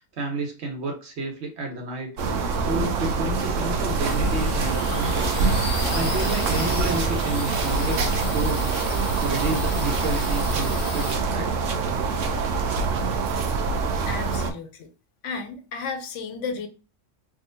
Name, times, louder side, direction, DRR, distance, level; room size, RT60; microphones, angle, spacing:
voice 1, 0.0-2.1 2.6-5.3 5.9-8.0 8.3-8.7 9.2-11.5, right 2 dB, 60° right, 1.2 m, -30 dB
sound 1, 2.2-14.5, right 4 dB, 85° right, 1.0 m, -25 dB
sound 2, 3.8-10.3, equal, 60° left, 1.8 m, -34 dB
sound 3, 4.0-11.2, left 1 dB, 40° left, 1.2 m, -33 dB
voice 2, 14.1-14.9 15.2-16.7, left 5 dB, 75° left, 1.0 m, -33 dB
3.7 x 2.6 x 2.6 m
omnidirectional pair, 1.3 m